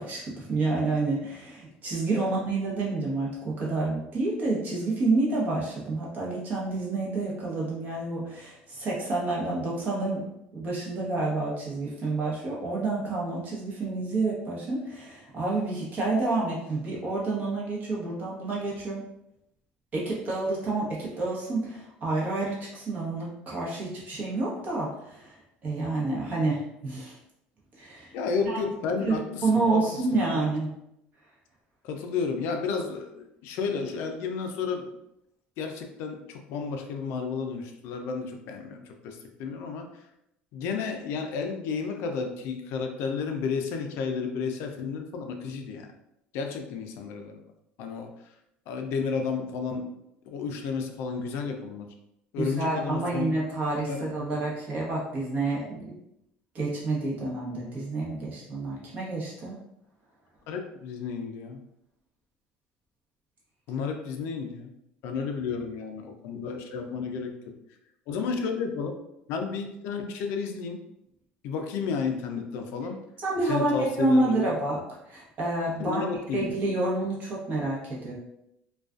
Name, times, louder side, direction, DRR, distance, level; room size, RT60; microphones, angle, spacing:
voice 1, 0.0-10.2 10.5-19.0 19.9-27.2 27.8-28.1 28.4-28.6 29.0-29.2 29.4-30.7 52.4-56.0 56.5-59.5 73.2-76.0 76.3-78.1, right 2 dB, 40° right, -4 dB, 0.9 m, -29 dB
voice 2, 28.1-29.8 30.3-30.4 31.8-35.0 35.6-39.9 40.5-45.9 46.3-47.4 47.8-48.2 48.7-49.9 50.3-51.9 52.3-53.4 53.9-54.1 60.5-61.6 63.7-64.7 65.0-67.5 68.1-68.9 69.3-70.8 71.4-73.0 73.5-74.5 75.8-76.5, left 5 dB, 65° left, 4 dB, 0.4 m, -32 dB
2.4 x 2.3 x 2.3 m, 0.81 s
cardioid pair, 130°, 4 cm